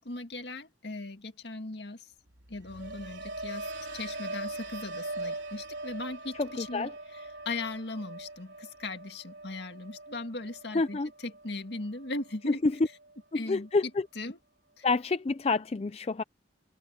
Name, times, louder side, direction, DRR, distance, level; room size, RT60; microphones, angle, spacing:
voice 1, 0.0-2.1 2.5-12.6 13.3-13.9 14.2-14.4 14.8-14.9, left 2 dB, 65° left, 2.1 m, -39 dB
sound 1, 2.3-12.4 12.7-13.2, right 2 dB, 90° right, 3.5 m, -41 dB
voice 2, 6.4-6.9 10.7-11.1 12.5-12.8 13.3-14.1 14.8-16.2, left 3 dB, 35° left, 0.4 m, -28 dB
head